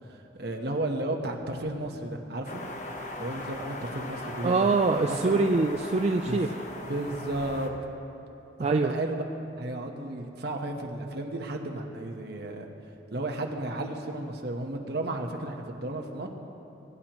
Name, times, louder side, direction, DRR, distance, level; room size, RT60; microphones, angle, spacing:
voice 1, 0.3-2.6 3.2-4.7 5.1-5.4 6.2-6.4 6.8-7.7 8.6-9.2 9.6-12.7 13.1-16.3, right 1 dB, 60° right, 2 dB, 1.1 m, -33 dB
sound 1, 2.4-7.7, left 1 dB, 40° left, 1.0 m, -39 dB
voice 2, 4.4-6.5 8.6-8.9, right 3 dB, 35° right, 4 dB, 0.3 m, -24 dB
21.0 x 10.5 x 3.0 m, 2.8 s
head